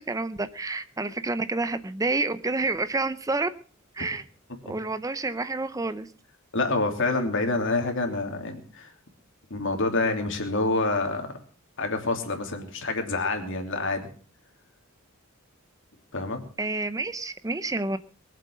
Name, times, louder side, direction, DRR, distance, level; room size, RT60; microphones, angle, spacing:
voice 1, 0.0-3.5 3.9-4.2 4.6-6.1 16.6-18.0, right 3 dB, 15° right, 12 dB, 0.6 m, -29 dB
voice 2, 6.5-8.9 9.5-11.3 11.8-14.1 16.1-16.4, left 3 dB, 60° left, 4 dB, 3.1 m, -27 dB
22.5 x 7.7 x 6.3 m, 0.42 s
head